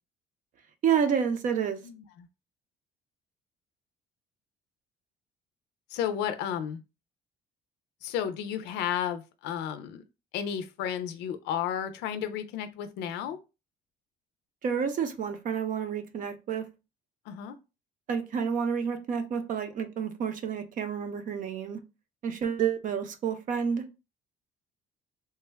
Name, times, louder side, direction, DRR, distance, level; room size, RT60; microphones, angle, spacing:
voice 1, 0.8-1.8 14.6-16.6 18.1-21.8 22.2-23.8, right 7 dB, 50° right, 0.7 m, -29 dB
voice 2, 1.8-2.3 5.9-6.8 8.0-10.0 10.3-13.4 17.3-17.6, left 9 dB, 85° left, 0.4 m, -33 dB
3.3 x 2.2 x 3.3 m
cardioid pair, 110°, 17 cm